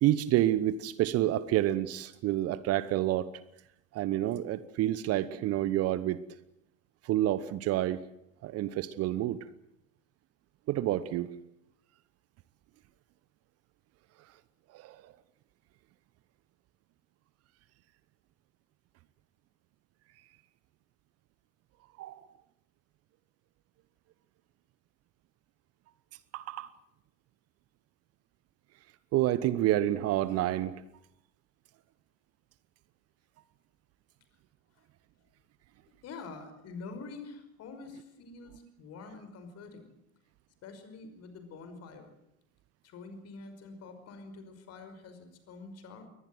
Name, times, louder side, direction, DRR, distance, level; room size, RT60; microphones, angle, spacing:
voice 1, 0.0-3.3 3.9-6.2 7.0-8.0 8.4-9.4 10.7-11.3 14.7-15.1 22.0-22.2 26.3-26.7 29.1-30.8, right 14 dB, 35° right, 17 dB, 1.1 m, -28 dB
voice 2, 36.0-39.9 40.6-42.1 42.8-46.1, left 4 dB, 40° left, 9 dB, 5.5 m, -46 dB
23.0 x 19.5 x 7.8 m, 0.80 s
figure-of-eight pair, 85°, 40 cm